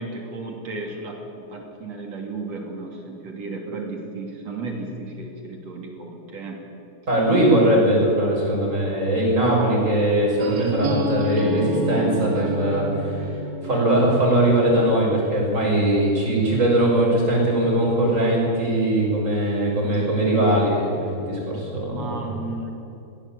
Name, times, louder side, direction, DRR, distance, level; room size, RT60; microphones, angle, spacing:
voice 1, 0.0-6.6 20.0-20.1 21.9-22.7, right 3 dB, 40° right, 1 dB, 3.1 m, -34 dB
voice 2, 7.1-13.4 13.6-22.1, right 1 dB, 15° right, -3 dB, 6.6 m, -20 dB
sound 1, 10.4-16.2, right 1 dB, 60° right, 3.5 m, -30 dB
21.5 x 17.5 x 8.7 m, 2.9 s
omnidirectional pair, 5.7 m